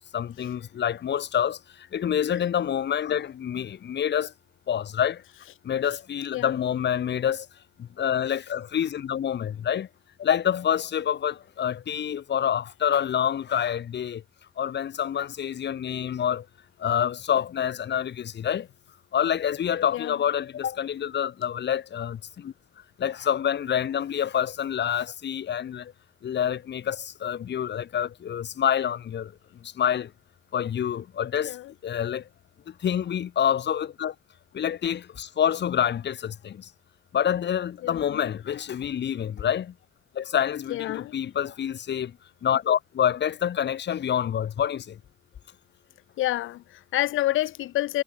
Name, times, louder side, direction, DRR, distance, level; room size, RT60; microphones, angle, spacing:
voice 1, 0.1-4.3 4.7-5.2 5.6-7.5 7.8-9.9 10.2-14.2 14.6-16.4 16.8-18.7 19.1-22.5 23.0-25.9 26.2-29.3 29.6-30.1 30.5-31.6 31.8-32.2 32.7-34.1 34.5-36.7 37.1-39.7 40.1-42.2 42.4-45.0, left 9 dB, 60° left, 6.7 m, -27 dB
voice 2, 37.8-38.2 40.7-41.1 46.2-48.0, left 15 dB, 85° left, 4.3 m, -28 dB
cardioid pair, 90°, 20 cm